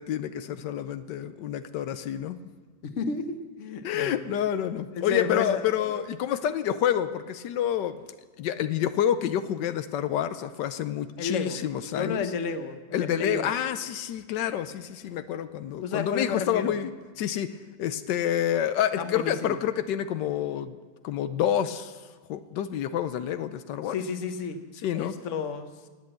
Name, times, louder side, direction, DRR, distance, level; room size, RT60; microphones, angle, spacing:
voice 1, 0.0-2.4 3.8-8.0 8.4-12.2 12.9-20.8 21.0-22.0 22.3-24.0 24.8-25.1, left 10 dB, 85° left, 11 dB, 1.3 m, -28 dB
voice 2, 2.8-4.3 4.9-5.6 11.2-11.6 11.9-13.5 15.8-16.8 19.0-19.6 23.9-24.6 24.9-25.7, left 5 dB, 50° left, 9 dB, 1.2 m, -31 dB
19.5 x 8.3 x 7.7 m, 1.4 s
omnidirectional pair, 1.9 m